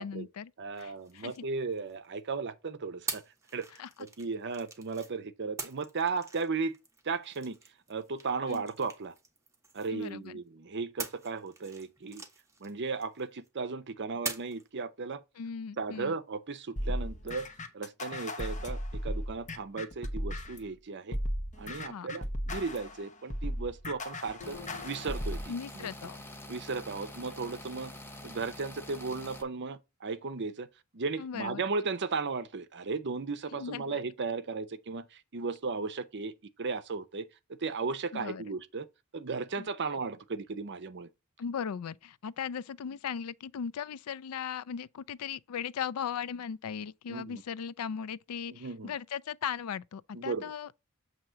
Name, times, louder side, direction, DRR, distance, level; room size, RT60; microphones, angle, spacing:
voice 1, 0.0-0.5 0.8-1.4 3.8-3.9 8.5-8.6 9.9-10.4 15.4-16.1 21.9-22.1 25.5-26.2 31.2-31.6 33.5-34.0 38.1-38.4 39.6-39.7 41.4-50.7, left 7 dB, 75° left, 0.4 m, -38 dB
voice 2, 0.6-3.2 3.5-3.7 4.0-6.8 7.0-7.6 7.9-9.2 9.7-12.2 12.6-15.2 15.8-17.5 17.7-21.2 21.6-24.6 24.8-25.9 26.5-27.9 28.2-30.7 30.9-37.3 37.6-38.9 39.1-41.1 47.1-47.4 48.5-48.9 50.1-50.5, right 4 dB, 50° right, 0.7 m, -35 dB
sound 1, 0.8-2.2 3.1-5.1 5.6-10.3 11.0-13.5 14.3-14.7, right 4 dB, 15° right, 1.2 m, -44 dB
sound 2, 16.8-20.7 21.1-25.5, equal, 35° left, 1.0 m, -36 dB
sound 3, 24.4-29.4, left 1 dB, 10° left, 0.8 m, -46 dB
7.5 x 2.9 x 5.6 m
head